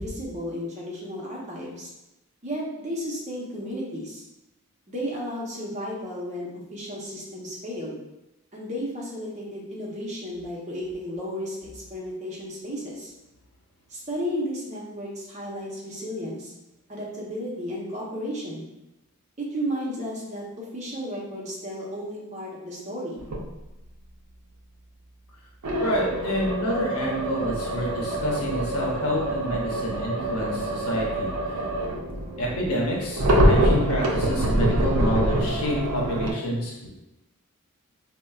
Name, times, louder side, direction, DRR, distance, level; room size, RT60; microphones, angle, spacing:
voice 1, 0.0-1.9 2.4-4.2 4.9-8.0 8.5-13.1 13.9-16.5 16.9-18.7 19.4-20.4 20.7-23.2, equal, 30° right, -4 dB, 0.7 m, -33 dB
sound 1, 23.2-23.4 25.6-36.3, right 1 dB, 85° right, 0.5 m, -25 dB
voice 2, 25.8-31.3 32.4-36.9, equal, 85° left, -2 dB, 0.7 m, -28 dB
4.1 x 2.1 x 2.3 m, 0.96 s
head